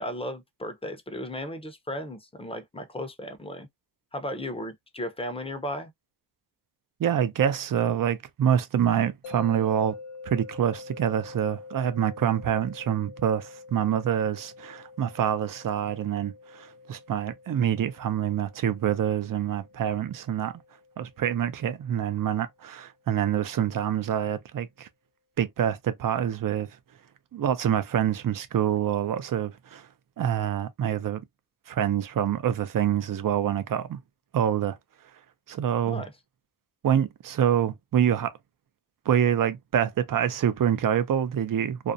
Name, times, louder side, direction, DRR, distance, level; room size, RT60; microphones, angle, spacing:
voice 1, 0.0-3.7 4.1-5.9 35.9-36.1, left 1 dB, 15° left, 0.6 m, -35 dB
voice 2, 7.0-10.0 10.3-20.5 21.0-24.9 25.4-26.7 27.3-29.8 30.2-31.2 31.7-34.0 34.3-34.8 35.5-36.0 36.8-38.3 39.1-41.9, right 9 dB, 55° right, 0.5 m, -26 dB
sound 1, 9.2-22.3, left 4 dB, 80° left, 0.6 m, -47 dB
2.5 x 2.1 x 2.6 m
cardioid pair, 70°, 41 cm